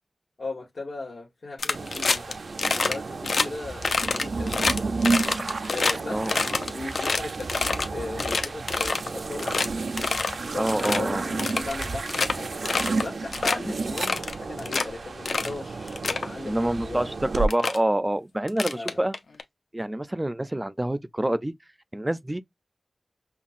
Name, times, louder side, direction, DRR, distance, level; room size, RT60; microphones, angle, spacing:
voice 1, 0.4-2.4 2.7-5.0 5.7-9.7 10.4-12.6 13.0-17.2 18.7-19.0, left 3 dB, 70° left, 1.1 m, -37 dB
sound 1, 1.6-2.3 2.6-2.9 3.2-3.5 3.8-5.9 6.3-7.9 8.2-9.1 9.4-9.7 10.0-10.3 10.7-11.0 11.4-12.3 12.7-13.0 13.3-13.6 14.0-14.8 15.3-15.5 15.9-16.3 17.1-17.2 17.5-17.8 18.5-19.4, left 4 dB, 85° left, 0.5 m, -26 dB
sound 2, 1.7-17.5, right 3 dB, 80° right, 0.4 m, -32 dB
voice 2, 10.6-11.2 13.6-13.7 16.4-19.1 19.7-21.5 21.9-22.4, right 1 dB, 20° right, 0.4 m, -26 dB
5.6 x 2.2 x 2.5 m
wide cardioid pair, 80°, 0 cm